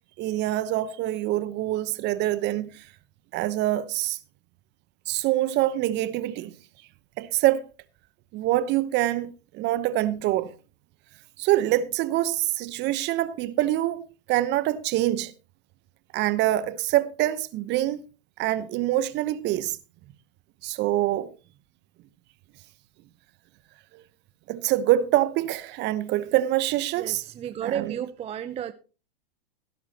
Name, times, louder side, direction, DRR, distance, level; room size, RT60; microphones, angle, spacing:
voice 1, 0.2-2.8 3.3-4.2 5.1-6.5 7.2-7.6 8.3-10.5 11.4-14.0 14.3-15.3 16.1-18.0 18.4-19.8 20.6-21.3 23.9-24.0 24.5-27.2 27.6-27.9, right 14 dB, 35° right, 1.0 m, -25 dB
voice 2, 27.0-28.7, right 9 dB, 20° right, 0.6 m, -32 dB
16.5 x 11.0 x 2.9 m
hypercardioid pair, 105°, 29 cm